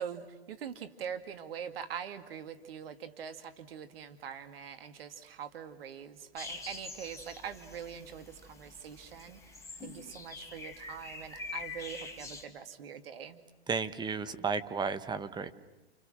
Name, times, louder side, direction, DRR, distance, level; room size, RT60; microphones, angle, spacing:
voice 1, 0.0-9.4 9.8-13.4, right 8 dB, 65° right, 9 dB, 2.3 m, -43 dB
sound 1, 6.4-12.5, left 3 dB, 10° left, 4.6 m, -45 dB
voice 2, 13.7-15.5, right 5 dB, 15° right, 10 dB, 1.4 m, -33 dB
30.0 x 29.0 x 6.5 m, 1.0 s
hypercardioid pair, 115°, 31 cm